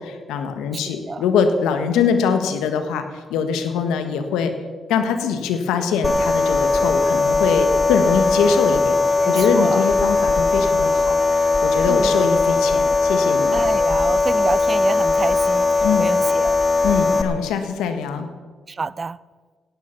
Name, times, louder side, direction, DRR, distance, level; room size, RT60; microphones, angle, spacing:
voice 1, 0.0-4.5 4.9-13.6 15.8-16.1 16.8-18.3, left 6 dB, 85° left, 8 dB, 1.5 m, -23 dB
sound 1, 6.0-17.2, left 3 dB, 35° left, 1.7 m, -19 dB
voice 2, 9.2-9.8 11.9-12.1 13.5-16.6 18.7-19.2, right 4 dB, 40° right, 19 dB, 0.6 m, -28 dB
17.5 x 12.5 x 5.8 m, 1.5 s
supercardioid pair, 55°, 0 cm